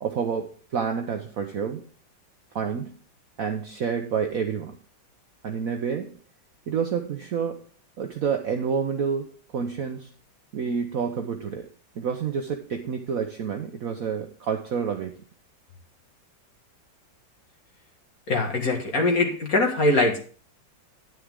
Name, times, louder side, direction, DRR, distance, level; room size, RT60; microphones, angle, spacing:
voice 1, 0.0-1.8 2.5-3.0 3.4-4.8 5.4-6.2 6.7-7.6 8.0-10.1 10.5-11.7 12.0-15.1, right 6 dB, 55° right, 5 dB, 1.1 m, -29 dB
voice 2, 18.3-20.2, left 2 dB, 50° left, 2 dB, 2.2 m, -22 dB
9.9 x 9.5 x 3.7 m, 0.41 s
omnidirectional pair, 2.1 m